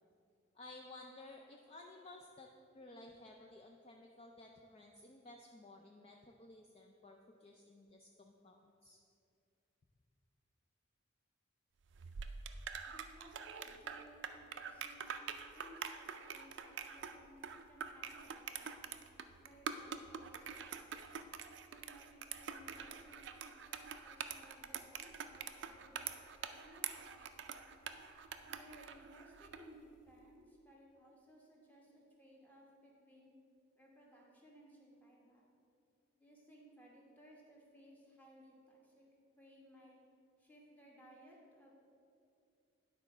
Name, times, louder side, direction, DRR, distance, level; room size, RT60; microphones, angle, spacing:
voice 1, 0.5-2.5 2.7-9.0, left 2 dB, 30° left, 2 dB, 0.3 m, -56 dB
sound 1, 11.9-29.7, right 7 dB, 60° right, 0.4 m, -46 dB
voice 2, 12.9-18.9 19.4-21.1 21.7-26.1 26.6-27.7 28.5-33.3 33.7-35.5 36.1-39.0 39.4-39.9 40.4-41.7, equal, 10° left, -3 dB, 1.1 m, -61 dB
10.0 x 4.0 x 5.4 m, 2.6 s
head